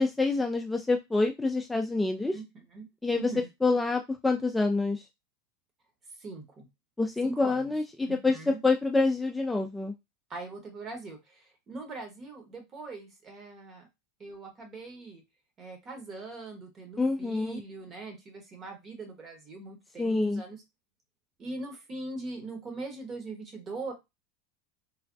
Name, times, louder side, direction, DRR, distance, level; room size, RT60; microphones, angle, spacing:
voice 1, 0.0-2.4 3.0-3.3 3.6-5.0 7.0-9.9 17.0-17.6 20.0-20.4, left 3 dB, 10° left, 3 dB, 0.3 m, -27 dB
voice 2, 3.1-3.5 6.2-6.7 7.2-7.7 8.0-8.6 10.3-13.9 14.2-15.2 15.6-20.6 21.4-23.9, right 3 dB, 30° right, 4 dB, 1.1 m, -41 dB
3.2 x 2.0 x 2.6 m, 0.21 s
hypercardioid pair, 105°, 0 cm